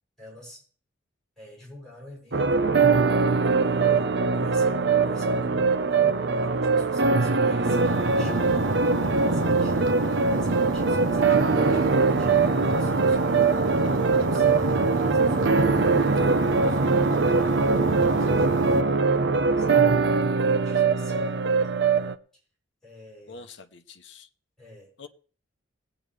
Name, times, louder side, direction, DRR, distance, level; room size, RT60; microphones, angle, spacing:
voice 1, 0.2-0.6 1.4-2.6 3.6-8.7 9.0-12.3 12.7-19.2 19.6-21.8 22.8-23.5 24.6-24.9, left 1 dB, ahead, 7.5 m, -47 dB
sound 1, 2.3-22.2, right 4 dB, 60° right, 0.6 m, -22 dB
sound 2, 7.6-18.8, right 2 dB, 85° right, 1.0 m, -28 dB
voice 2, 23.3-24.3 25.0-25.1, left 4 dB, 65° left, 0.8 m, -46 dB
20.0 x 8.9 x 3.4 m
head